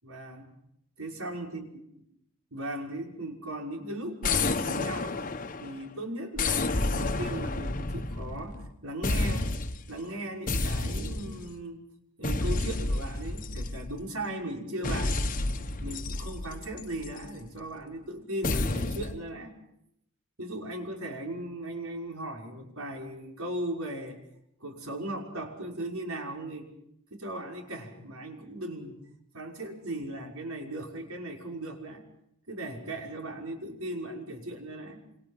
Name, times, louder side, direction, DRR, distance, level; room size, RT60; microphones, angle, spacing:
voice 1, 0.0-0.5 1.0-1.6 2.5-5.2 5.6-9.5 9.9-11.8 12.2-15.2 15.8-19.5 20.4-24.2 24.6-26.7 27.1-29.0 29.3-32.0 32.5-35.0, right 1 dB, 75° right, 2 dB, 5.8 m, -37 dB
sound 1, 4.2-5.8 6.4-8.7 9.0-9.9 10.5-11.5 12.2-14.1 14.8-17.3 18.4-19.2, left 2 dB, 40° left, 1.2 m, -30 dB
28.0 x 27.0 x 5.7 m, 0.75 s
head